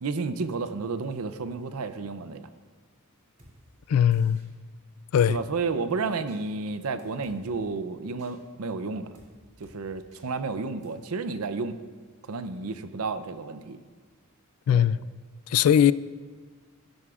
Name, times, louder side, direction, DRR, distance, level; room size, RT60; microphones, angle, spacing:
voice 1, 0.0-2.5 5.3-9.1 9.6-11.8 12.3-13.8 14.7-14.9 15.9-16.0, right 4 dB, 75° right, 0.6 m, -31 dB
Drum kit, 3.4-3.5 4.1-4.5 5.3-5.5 6.3-6.4 7.0-7.4 8.2-8.3 9.1-9.3 9.6-9.8 10.1-10.2 10.8-10.9, right 1 dB, 35° right, 2.9 m, -54 dB
voice 2, 3.9-4.4 5.1-5.4 14.7-15.0 15.5-15.9, left 9 dB, 75° left, 0.3 m, -20 dB
15.5 x 12.5 x 2.5 m
head